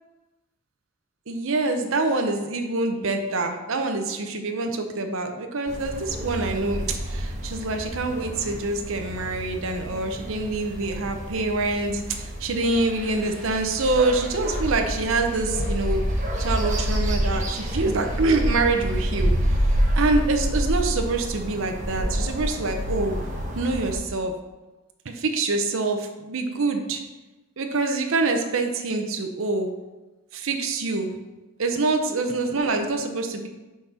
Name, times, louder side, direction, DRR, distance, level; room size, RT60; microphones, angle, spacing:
voice 1, 1.3-16.0 16.4-19.3 19.9-23.2 23.5-24.3 25.0-27.0 27.6-29.7 30.3-31.2 31.6-33.5, right 3 dB, 65° right, 4 dB, 0.7 m, -25 dB
sound 1, 5.7-24.0, equal, 35° right, 1.2 m, -28 dB
5.7 x 4.2 x 5.7 m, 1.1 s
head